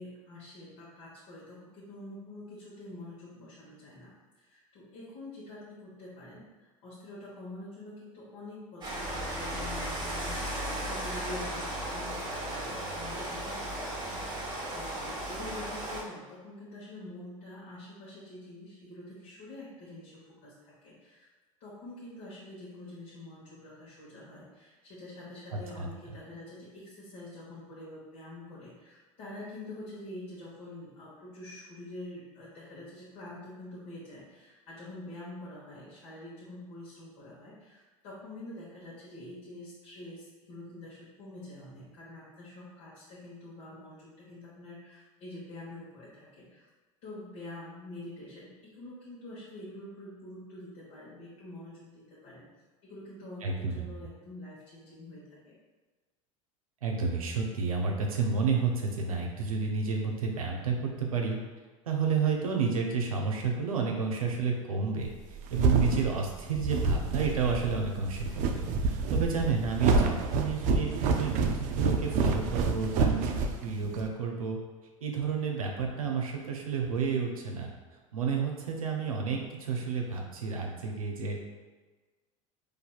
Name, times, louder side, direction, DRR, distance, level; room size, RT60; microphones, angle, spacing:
voice 1, 0.0-14.4 14.7-21.3 21.6-46.7 47.0-52.5 52.8-55.5 73.8-74.0, left 1 dB, 55° left, -8 dB, 1.1 m, -46 dB
Rain, 8.8-16.0, right 1 dB, 25° right, 1.0 m, -35 dB
voice 2, 53.4-53.8 56.8-61.4 61.8-74.6 75.0-77.7 78.1-81.4, right 5 dB, 85° right, 1 dB, 0.6 m, -31 dB
sound 1, 65.1-74.1, right 4 dB, 45° right, 0.4 m, -28 dB
4.0 x 2.6 x 2.3 m, 1.3 s
hypercardioid pair, 85°, 18 cm